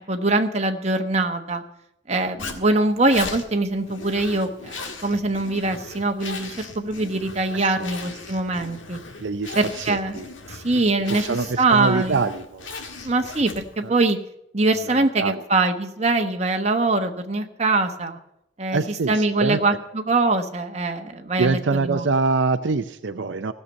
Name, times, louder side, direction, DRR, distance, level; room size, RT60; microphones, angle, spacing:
voice 1, 0.1-1.6 2.1-9.0 9.5-10.2 10.5-11.3 11.6-12.2 13.0-14.2 14.5-18.2 18.6-18.8 19.1-21.6 21.8-22.0, right 2 dB, 35° right, 5 dB, 1.1 m, -23 dB
Zipper (clothing), 2.4-13.9, left 4 dB, 85° left, 1.8 m, -38 dB
voice 2, 7.5-7.9 9.2-10.3 10.7-13.1 13.8-13.9 14.7-15.4 18.7-19.6 21.4-23.5, right 4 dB, 70° right, 9 dB, 0.6 m, -25 dB
16.0 x 6.7 x 8.7 m, 0.81 s
head